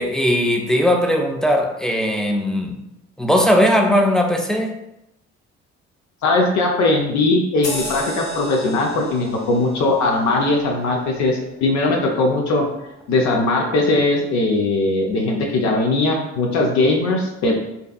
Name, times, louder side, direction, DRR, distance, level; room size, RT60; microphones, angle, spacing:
voice 1, 0.0-2.8 3.2-4.8, equal, ahead, 2 dB, 0.3 m, -18 dB
voice 2, 6.2-12.7 13.1-17.5, left 2 dB, 60° left, 1 dB, 0.5 m, -19 dB
sound 1, 7.6-12.6 13.0-13.2, left 1 dB, 80° left, 0.9 m, -35 dB
2.6 x 2.3 x 2.2 m, 0.87 s
hypercardioid pair, 55°, 32 cm